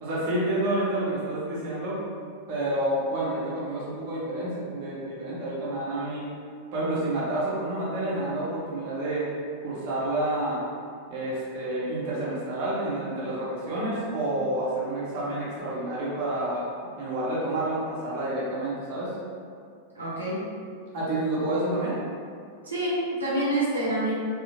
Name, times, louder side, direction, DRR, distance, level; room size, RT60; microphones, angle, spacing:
voice 1, 0.0-2.0 2.5-6.3 6.7-9.3 9.6-10.7 11.1-16.7 17.0-19.2 20.9-22.0, right 1 dB, 45° right, -8 dB, 0.8 m, -29 dB
voice 2, 19.9-20.4 22.6-24.1, right 1 dB, 80° right, -9 dB, 0.8 m, -27 dB
2.7 x 2.1 x 2.8 m, 2.2 s
figure-of-eight pair, 90°, 0 cm